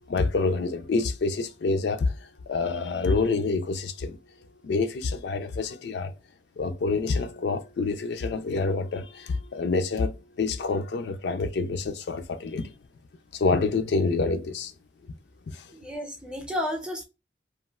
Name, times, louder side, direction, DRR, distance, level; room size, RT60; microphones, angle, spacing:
voice 1, 0.1-2.1 2.5-4.2 4.6-6.1 6.6-12.7 13.3-14.7 15.5-15.6, left 3 dB, 70° left, 0.4 m, -27 dB
voice 2, 15.7-17.0, left 1 dB, 5° right, 0.6 m, -32 dB
3.0 x 2.4 x 2.2 m
head